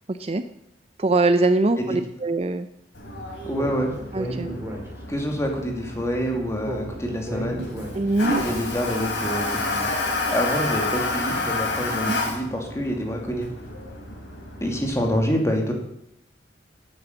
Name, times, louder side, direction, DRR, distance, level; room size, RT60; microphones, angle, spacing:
voice 1, 0.1-0.4 1.0-2.7 4.1-4.5 7.9-8.4 12.1-12.2, right 2 dB, 35° right, 10 dB, 0.5 m, -22 dB
Toilet flush, 2.9-15.2, left 2 dB, 80° left, 3.9 m, -30 dB
voice 2, 3.4-3.9 5.1-7.6 8.4-9.9 10.3-13.5 14.6-15.7, equal, 15° left, 1 dB, 2.3 m, -26 dB
Speech, 3.5-5.3 6.6-8.4, equal, 15° right, 2.4 m, -34 dB
10.5 x 8.8 x 8.3 m, 0.82 s
head